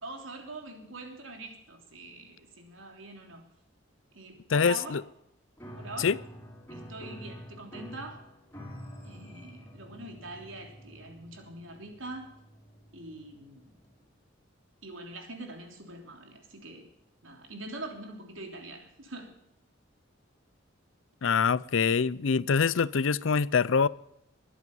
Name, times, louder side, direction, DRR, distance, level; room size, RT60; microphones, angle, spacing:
voice 1, 0.0-3.5 4.1-5.0 5.8-6.1 6.7-8.2 9.0-12.4 12.9-13.7 14.8-16.9 17.2-19.4, right 2 dB, 85° right, 3.4 m, -43 dB
voice 2, 4.5-5.0 6.0-6.2 21.2-23.9, left 5 dB, 75° left, 0.5 m, -25 dB
Piano, 5.6-14.1, equal, 10° left, 4.4 m, -48 dB
21.5 x 11.0 x 5.4 m
head